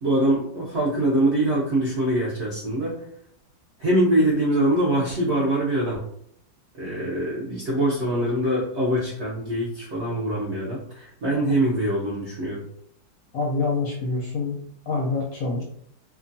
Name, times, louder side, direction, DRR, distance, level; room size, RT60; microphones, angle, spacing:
voice 1, 0.0-3.0 3.8-6.1 6.7-12.6, right 1 dB, 70° right, -6 dB, 0.6 m, -23 dB
voice 2, 13.3-14.6 14.9-15.6, left 3 dB, 70° left, -2 dB, 0.9 m, -26 dB
2.9 x 2.3 x 2.6 m, 0.70 s
omnidirectional pair, 2.0 m